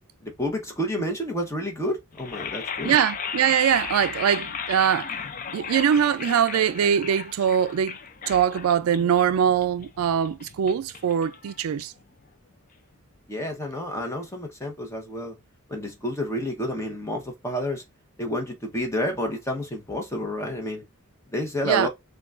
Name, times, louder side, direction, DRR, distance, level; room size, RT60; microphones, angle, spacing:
voice 1, 0.2-3.0 13.3-15.3 15.7-17.8 18.2-20.8 21.3-21.9, equal, 15° left, 0.9 m, -30 dB
sound 1, 2.1-12.2, left 6 dB, 40° left, 0.4 m, -36 dB
voice 2, 2.8-5.2 5.5-8.0 8.3-11.9 21.6-21.9, right 8 dB, 80° right, 0.3 m, -22 dB
6.0 x 2.3 x 2.4 m
head